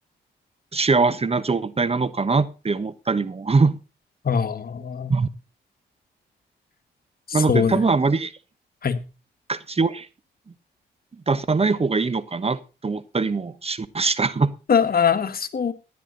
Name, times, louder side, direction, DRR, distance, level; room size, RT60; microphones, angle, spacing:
voice 1, 0.7-3.8 5.1-5.3 7.3-8.3 9.5-10.1 11.3-14.5, right 4 dB, 30° right, 1.1 m, -22 dB
voice 2, 4.2-5.1 7.3-7.8 8.8-9.0 14.7-15.7, left 6 dB, 50° left, 1.7 m, -22 dB
16.0 x 11.0 x 4.0 m
cardioid pair, 65°, 19 cm